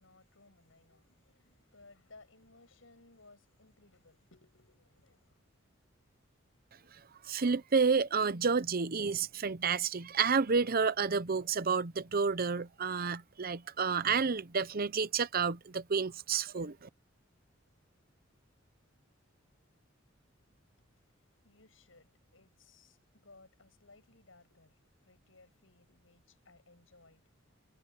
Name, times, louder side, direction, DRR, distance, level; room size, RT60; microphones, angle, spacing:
voice 1, 0.0-5.4 20.8-27.7, left 3 dB, 80° left, 6.7 m, -62 dB
voice 2, 7.2-16.9, right 5 dB, 50° right, 0.8 m, -30 dB
head